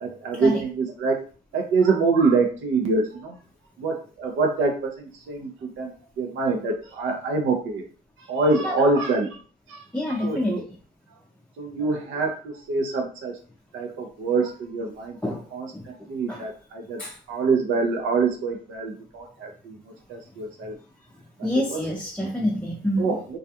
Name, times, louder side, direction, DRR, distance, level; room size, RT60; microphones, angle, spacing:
voice 1, 0.0-1.2 1.5-3.3 3.8-7.8 8.2-9.4 9.7-10.6 11.6-13.4 13.7-15.2 15.5-17.0 17.3-20.8 21.4-21.8 22.2-22.3 23.0-23.4, right 3 dB, 80° right, 4 dB, 0.6 m, -25 dB
voice 2, 9.9-10.6 15.2-15.4 16.3-16.4 17.0-17.1 21.4-23.2, left 1 dB, 5° left, -3 dB, 0.5 m, -26 dB
2.3 x 2.2 x 2.7 m, 0.40 s
cardioid pair, 90°, 20 cm